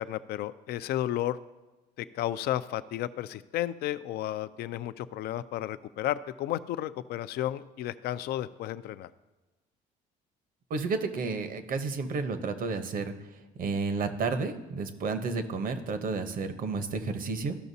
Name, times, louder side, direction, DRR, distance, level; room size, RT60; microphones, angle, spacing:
voice 1, 0.0-1.4 2.0-9.1, left 13 dB, 70° left, 14 dB, 0.4 m, -33 dB
voice 2, 10.7-13.1 13.6-17.6, right 4 dB, 55° right, 9 dB, 0.8 m, -31 dB
14.0 x 5.8 x 2.7 m, 1.2 s
cardioid pair, 110°, 17 cm